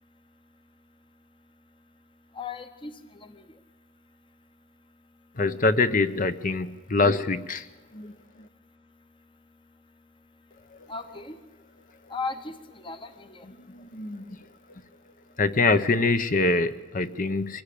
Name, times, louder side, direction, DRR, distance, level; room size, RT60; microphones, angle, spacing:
voice 1, 2.3-2.9 3.3-3.4 10.9-11.4 12.1-13.5, left 4 dB, 25° left, 9 dB, 1.0 m, -36 dB
voice 2, 5.4-7.6 8.0-8.1 13.9-14.2 15.4-17.6, left 3 dB, 40° left, 11 dB, 0.8 m, -24 dB
24.5 x 17.0 x 8.5 m, 1.1 s
head